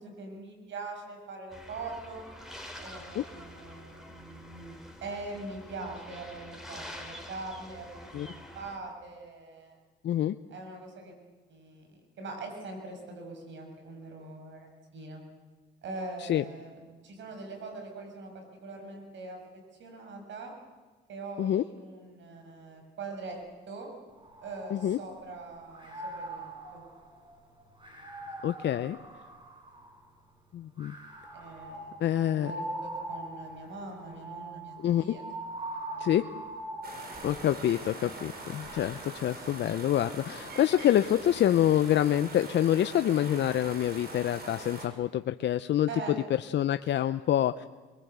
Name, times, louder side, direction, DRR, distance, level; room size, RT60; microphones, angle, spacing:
voice 1, 0.0-2.3 2.8-9.8 10.5-11.1 11.5-15.2 15.8-16.8 17.0-19.4 19.8-20.5 21.1-23.4 23.7-23.9 24.4-26.8 28.6-28.7 31.3-31.9 32.3-35.2 35.9-36.2 45.9-46.1, right 3 dB, 70° right, 3 dB, 7.0 m, -42 dB
sound 1, 1.5-8.8, equal, ahead, 4.7 m, -47 dB
voice 2, 10.0-10.4 16.2-16.4 21.4-21.6 24.7-25.0 28.4-29.0 30.5-30.9 32.0-32.5 34.8-35.2 36.0-36.3 37.2-47.7, left 11 dB, 65° left, 10 dB, 0.7 m, -27 dB
sound 2, 24.1-25.3 25.7-30.1 30.8-37.5 38.2-40.8, right 1 dB, 25° right, 6.8 m, -42 dB
sound 3, 36.8-44.9, right 2 dB, 50° right, 6.1 m, -43 dB
24.0 x 22.5 x 8.2 m, 1.4 s
cardioid pair, 90°, 20 cm